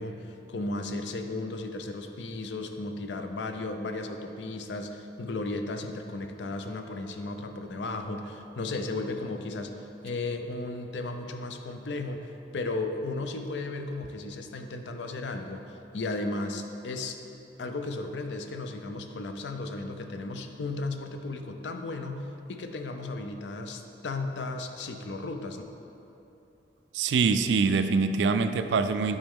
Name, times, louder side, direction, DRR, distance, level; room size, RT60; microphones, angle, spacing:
voice 1, 0.0-15.6 15.9-17.2 17.6-25.6, left 2 dB, 70° left, 6 dB, 0.5 m, -35 dB
voice 2, 26.9-29.2, right 4 dB, 70° right, 9 dB, 0.3 m, -24 dB
8.8 x 4.3 x 3.6 m, 3.0 s
head